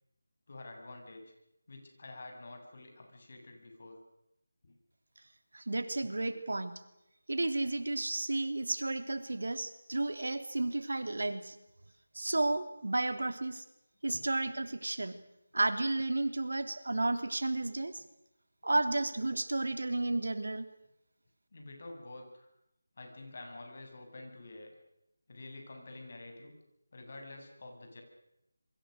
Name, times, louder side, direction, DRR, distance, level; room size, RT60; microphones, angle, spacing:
voice 1, 0.5-1.2 1.7-4.0 4.6-4.7 21.5-22.5 23.0-24.7 25.3-26.5 26.9-28.0, left 2 dB, 50° left, 3 dB, 7.2 m, -48 dB
voice 2, 5.5-6.8 7.3-11.6 12.1-13.6 14.0-15.2 15.5-18.0 18.6-20.7, right 2 dB, 80° right, 9 dB, 3.2 m, -32 dB
28.0 x 23.5 x 6.6 m, 0.86 s
figure-of-eight pair, 170°, 0 cm